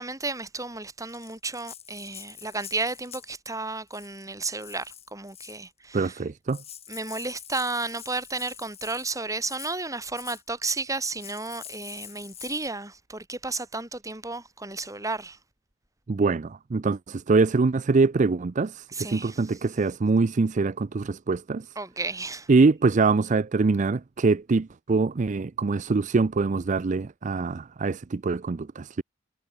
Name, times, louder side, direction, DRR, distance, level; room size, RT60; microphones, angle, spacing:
voice 1, 0.0-6.2 6.9-15.4 18.9-19.6 21.8-22.5, right 3 dB, 20° right, 7.3 m, -33 dB
Rattle (instrument), 1.1-3.4 3.9-4.2 4.6-5.7 6.2-6.3 6.5-9.1 9.4-9.7 10.1-10.4 11.0-12.7, left 9 dB, 35° left, 5.4 m, -45 dB
voice 2, 5.9-6.6 16.1-21.7 22.5-29.0, right 4 dB, 40° right, 0.5 m, -24 dB
head